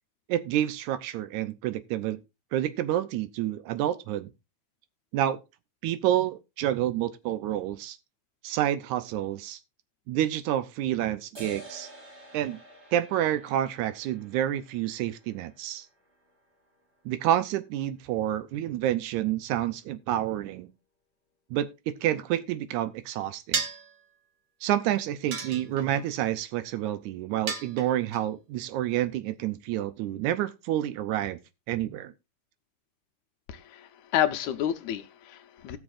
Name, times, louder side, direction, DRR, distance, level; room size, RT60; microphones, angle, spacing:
voice 1, 0.3-2.2 2.5-4.3 5.1-5.4 5.8-8.0 8.4-9.6 10.1-11.9 12.3-12.6 12.9-15.9 17.1-20.7 21.5-23.7 24.6-31.4 31.7-32.1, right 12 dB, 80° right, 2.1 m, -29 dB
sound 1, 11.4-18.3, right 2 dB, 35° right, 3.9 m, -51 dB
sound 2, 23.5-23.9 25.3-26.0 27.5-28.2, right 6 dB, 60° right, 1.2 m, -32 dB
voice 2, 33.5-35.8, left 10 dB, 80° left, 2.1 m, -30 dB
18.5 x 6.3 x 2.5 m
omnidirectional pair, 3.4 m